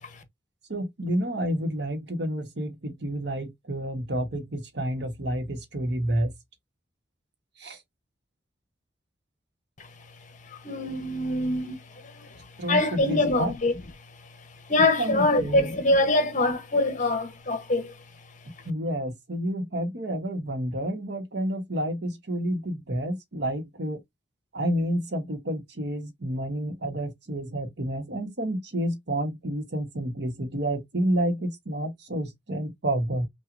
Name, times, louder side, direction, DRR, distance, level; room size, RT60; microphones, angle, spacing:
voice 1, 0.7-6.3 7.6-7.8 12.6-13.5 15.0-15.7 18.6-24.0 24.5-33.3, right 1 dB, 60° right, 1.1 m, -29 dB
voice 2, 10.5-12.3 12.7-13.7 14.7-17.9, left 2 dB, 40° left, 0.9 m, -24 dB
5.8 x 2.4 x 2.5 m
head